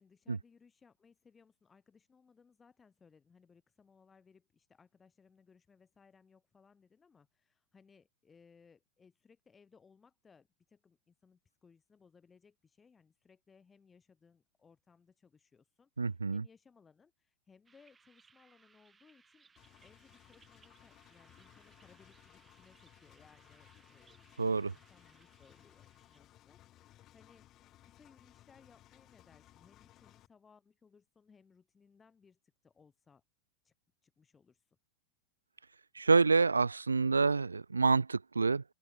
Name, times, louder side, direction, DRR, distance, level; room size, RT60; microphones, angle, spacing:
voice 1, 0.0-19.5 19.8-33.2 33.6-33.7 34.0-34.8, left 5 dB, 15° left, 3.3 m, -65 dB
voice 2, 16.0-16.4 24.4-24.7 36.0-38.6, right 4 dB, 75° right, 0.4 m, -27 dB
sound 1, 17.7-26.2, right 5 dB, 15° right, 7.3 m, -67 dB
Engine, 19.6-30.3, left 13 dB, 35° left, 2.7 m, -61 dB
open air
figure-of-eight pair, 90°, 0 cm